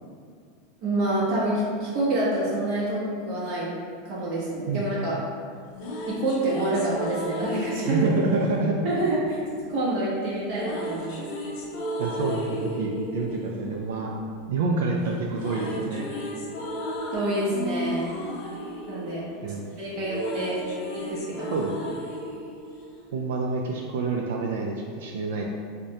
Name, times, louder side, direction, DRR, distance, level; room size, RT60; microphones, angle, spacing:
voice 1, 0.8-3.7 4.0-5.2 6.1-8.1 8.8-9.4 9.7-11.2 17.1-18.1 18.9-19.2 19.8-20.6 20.9-21.7, right 1 dB, 35° right, -8 dB, 0.7 m, -27 dB
sound 1, 5.5-9.7 10.5-14.8 15.0-23.6, equal, 50° left, 0.5 m, -34 dB
voice 2, 7.8-8.8 12.0-14.1 14.5-16.1 19.4-19.7 21.5-21.7 23.1-25.5, right 3 dB, 80° right, 0 dB, 0.3 m, -27 dB
4.8 x 2.1 x 2.7 m, 2.2 s
supercardioid pair, 170°, 0 cm